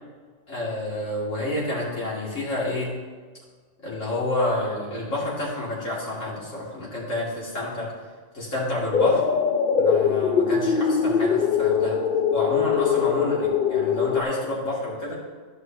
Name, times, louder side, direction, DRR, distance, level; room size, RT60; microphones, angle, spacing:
voice 1, 0.5-2.9 3.8-7.9 8.3-9.3 9.7-12.0 12.3-15.2, left 1 dB, 90° left, -6 dB, 3.0 m, -29 dB
sound 1, 8.9-14.2, left 6 dB, 60° left, 0.5 m, -22 dB
14.0 x 6.0 x 2.9 m, 1.5 s
omnidirectional pair, 1.3 m